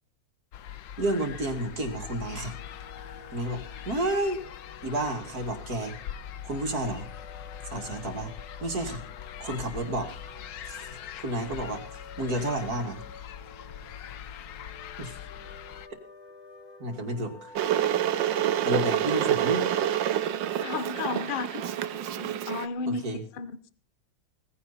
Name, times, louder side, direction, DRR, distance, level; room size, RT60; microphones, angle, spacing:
sound 1, 0.5-15.9, left 10 dB, 90° left, 1.6 m, -42 dB
voice 1, 1.0-2.6 3.3-4.4 4.8-5.9 6.4-7.1 7.6-8.3 8.6-9.0 9.4-10.1 10.7-11.8 12.2-13.0 15.0-15.1 16.8-17.6 18.6-19.6 22.9-23.2, right 1 dB, 55° right, 5 dB, 2.9 m, -31 dB
sound 2, 1.9-20.9, left 4 dB, 55° left, 2.3 m, -50 dB
Water / Boiling, 17.6-22.7, right 11 dB, 85° right, 1.6 m, -27 dB
voice 2, 20.6-21.6 21.9-23.1 23.3-23.7, left 5 dB, 35° left, 13 dB, 1.0 m, -33 dB
18.5 x 15.5 x 4.3 m, 0.40 s
omnidirectional pair, 1.9 m